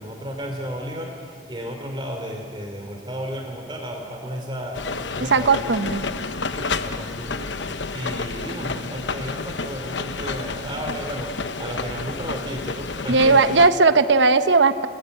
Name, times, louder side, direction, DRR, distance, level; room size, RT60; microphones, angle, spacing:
voice 1, 0.0-5.6 6.5-7.5 7.9-13.5, equal, 25° right, 2 dB, 2.9 m, -33 dB
sound 1, 4.7-13.7, left 4 dB, 75° left, 1.0 m, -30 dB
voice 2, 5.3-6.0 13.1-14.9, right 3 dB, 75° right, 11 dB, 1.0 m, -17 dB
28.5 x 20.0 x 9.1 m, 2.4 s
head